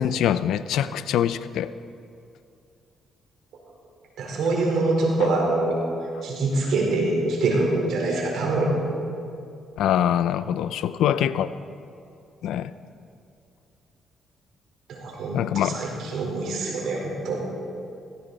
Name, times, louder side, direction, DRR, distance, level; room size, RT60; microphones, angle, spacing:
voice 1, 0.0-1.7 5.2-5.3 9.8-11.5 12.4-12.7 15.3-15.8, left 10 dB, 80° left, 15 dB, 0.5 m, -24 dB
voice 2, 4.2-5.8 6.2-8.7 14.9-17.4, right 2 dB, 75° right, -1 dB, 4.3 m, -24 dB
17.5 x 15.5 x 4.2 m, 2.5 s
cardioid pair, 90°, 0 cm